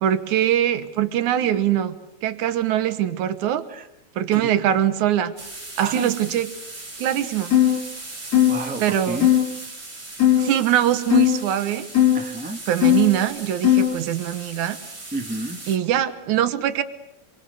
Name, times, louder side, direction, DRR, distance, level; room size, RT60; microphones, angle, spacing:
voice 1, 0.0-2.0 2.2-3.6 4.2-5.3 5.8-6.5 7.0-7.5 8.8-9.3 10.4-11.9 12.7-14.8 15.7-16.8, right 11 dB, 80° right, 11 dB, 2.6 m, -22 dB
sound 1, 5.4-15.8, right 2 dB, 20° right, 4.3 m, -38 dB
sound 2, 7.5-7.8 8.3-8.6 9.2-9.4 10.2-10.5 11.1-11.4 11.9-12.2 12.8-13.1 13.6-13.9, left 12 dB, 55° left, 4.5 m, -16 dB
voice 2, 8.5-9.3 12.1-12.6 15.1-15.6, right 2 dB, 5° right, 4 dB, 1.1 m, -30 dB
27.5 x 23.5 x 6.7 m, 0.81 s
omnidirectional pair, 3.4 m